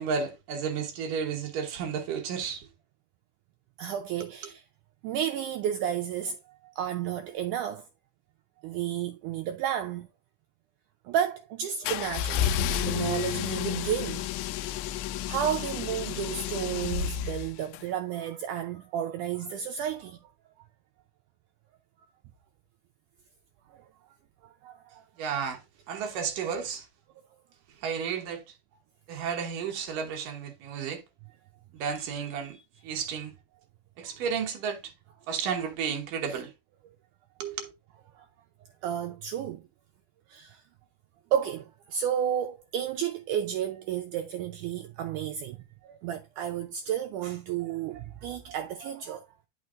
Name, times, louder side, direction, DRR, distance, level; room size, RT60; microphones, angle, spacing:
voice 1, 0.0-2.7 25.2-25.6 25.9-26.9 27.8-28.5 29.1-31.0 31.7-32.6 32.8-33.3 34.0-34.9 35.3-36.5 37.4-37.7, right 6 dB, 70° right, 2.5 m, -32 dB
voice 2, 3.8-4.6 5.0-6.4 6.8-7.8 8.6-10.1 11.0-14.3 14.9-20.3 24.6-25.0 36.3-36.4 38.2-38.3 38.8-39.6 40.3-40.6 41.3-45.6 45.8-49.2, right 10 dB, 85° right, 1.8 m, -32 dB
sound 1, 11.9-17.8, left 10 dB, 90° left, 2.5 m, -31 dB
10.0 x 6.2 x 2.5 m
omnidirectional pair, 4.4 m